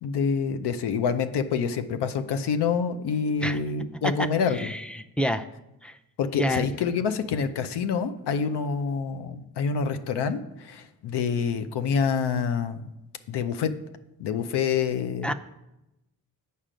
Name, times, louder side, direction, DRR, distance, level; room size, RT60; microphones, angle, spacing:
voice 1, 0.0-4.7 6.2-12.8 13.3-13.7 14.2-15.3, left 6 dB, 85° left, 9 dB, 0.6 m, -27 dB
voice 2, 4.5-5.5 5.8-6.0 6.4-6.7 15.2-15.3, equal, 5° left, 9 dB, 0.5 m, -28 dB
7.4 x 5.5 x 5.0 m, 0.93 s
cardioid pair, 55°, 39 cm